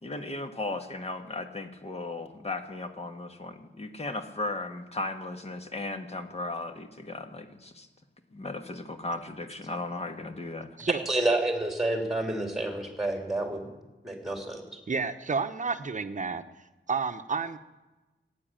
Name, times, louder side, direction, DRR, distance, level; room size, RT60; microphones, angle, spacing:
voice 1, 0.0-7.9 8.3-10.7, left 2 dB, 35° left, 6 dB, 1.4 m, -36 dB
voice 2, 11.1-13.7 14.0-14.6, right 2 dB, ahead, 3 dB, 3.2 m, -29 dB
voice 3, 14.9-16.4 16.9-17.6, right 4 dB, 40° right, 9 dB, 0.9 m, -30 dB
15.5 x 9.7 x 9.0 m, 1.1 s
wide cardioid pair, 135°, 19 cm